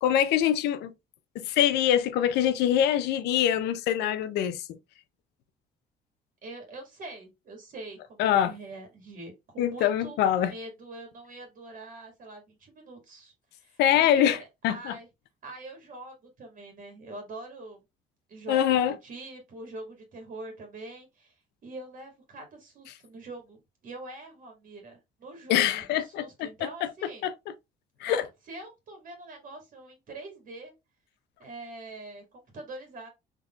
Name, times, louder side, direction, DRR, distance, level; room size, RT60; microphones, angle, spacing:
voice 1, 0.0-0.9 1.3-4.6 8.2-8.5 9.6-10.5 13.8-14.4 14.6-15.0 18.5-18.9 25.5-26.5 27.2-27.3 28.0-28.3, left 10 dB, 80° left, 0.6 m, -24 dB
voice 2, 6.4-10.2 10.5-15.1 15.4-17.8 18.3-21.3 21.6-23.6 23.8-27.3 28.0-30.7 31.4-33.1, right 2 dB, 55° right, 1.8 m, -44 dB
4.0 x 3.0 x 2.2 m
cardioid pair, 110°, 17 cm